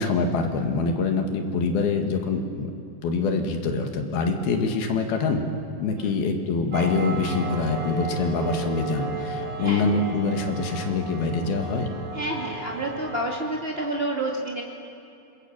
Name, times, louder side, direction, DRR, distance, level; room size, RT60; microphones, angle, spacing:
voice 1, 0.0-2.7 3.0-5.4 5.8-11.9, left 4 dB, 60° left, 4 dB, 3.5 m, -25 dB
sound 1, 6.7-13.8, right 2 dB, 35° right, 3.1 m, -33 dB
voice 2, 12.1-14.6, right 1 dB, 75° right, -2 dB, 0.5 m, -29 dB
26.5 x 22.0 x 7.4 m, 2.7 s
omnidirectional pair, 5.2 m